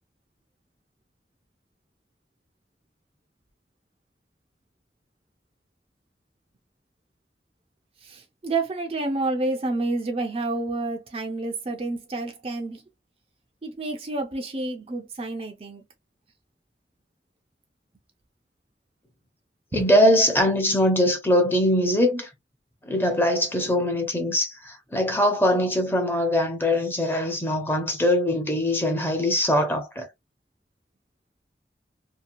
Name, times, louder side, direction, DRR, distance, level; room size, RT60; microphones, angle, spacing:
voice 1, 8.0-12.8 13.6-15.8 19.7-19.8, right 2 dB, 35° right, 0.5 m, -29 dB
voice 2, 19.7-22.3 22.8-30.1, left 1 dB, 10° left, 0.6 m, -22 dB
2.8 x 2.2 x 2.5 m
head